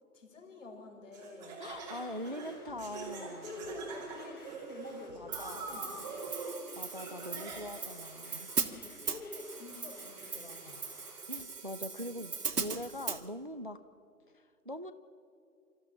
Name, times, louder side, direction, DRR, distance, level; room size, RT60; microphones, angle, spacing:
voice 1, 0.1-1.6 3.2-6.3 8.7-10.8, left 3 dB, 50° left, 3 dB, 5.0 m, -48 dB
Laughter, 1.1-7.9, right 4 dB, 5° right, 1.9 m, -44 dB
voice 2, 1.6-3.5 5.2-5.9 6.8-8.5 11.3-13.8 14.3-14.9, left 1 dB, 35° right, 13 dB, 0.4 m, -42 dB
sound 1, 1.7-11.4, left 2 dB, 70° left, 4.5 m, -58 dB
Hi-hat, 5.3-13.2, right 5 dB, 80° right, 1.9 m, -39 dB
26.0 x 14.0 x 7.2 m, 2.6 s
figure-of-eight pair, 160°, 46 cm